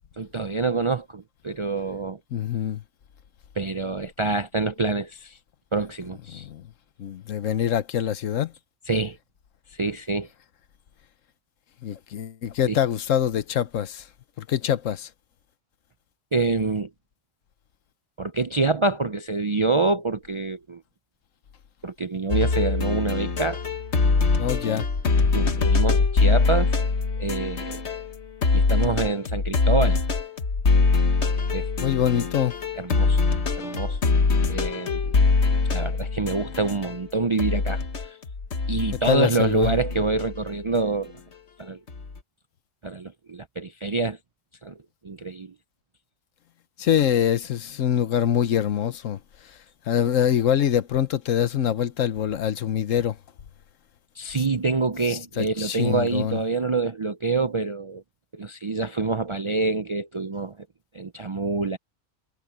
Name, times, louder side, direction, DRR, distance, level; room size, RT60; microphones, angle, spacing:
voice 1, 0.2-2.2 3.6-5.4 5.7-6.5 8.9-9.2 9.7-10.3 12.7-12.8 16.3-16.9 18.2-20.8 21.8-23.6 24.7-24.8 25.3-26.7 27.2-27.8 28.5-30.0 31.5-31.7 32.8-33.2 33.6-34.0 34.5-35.2 35.7-38.2 38.7-41.1 41.6-41.8 42.8-44.2 44.6-44.8 45.0-45.5 54.2-58.0 58.3-60.6 60.9-61.8, right 3 dB, 45° right, 0.4 m, -26 dB
voice 2, 2.3-2.8 6.3-6.6 7.0-8.5 11.8-14.0 14.4-15.1 24.4-24.9 31.8-32.5 39.1-39.7 46.8-49.2 49.9-53.2 55.1-56.4, left 9 dB, 75° left, 1.2 m, -24 dB
sound 1, 22.3-28.2 28.4-37.0 37.4-40.5 41.9-42.2, left 4 dB, 60° left, 1.6 m, -23 dB
omnidirectional pair, 1.3 m